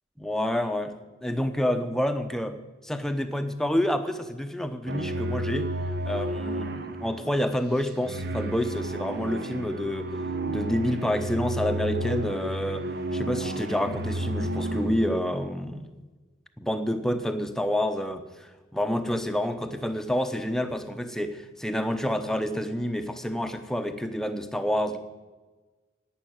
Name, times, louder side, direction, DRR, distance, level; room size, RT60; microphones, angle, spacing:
voice 1, 0.2-2.6 2.8-5.7 6.0-10.1 10.5-15.8 16.6-25.0, equal, 5° left, 8 dB, 0.9 m, -28 dB
sound 1, 4.9-15.4, right 1 dB, 60° right, 1.1 m, -32 dB
11.5 x 9.6 x 9.4 m, 1.3 s
head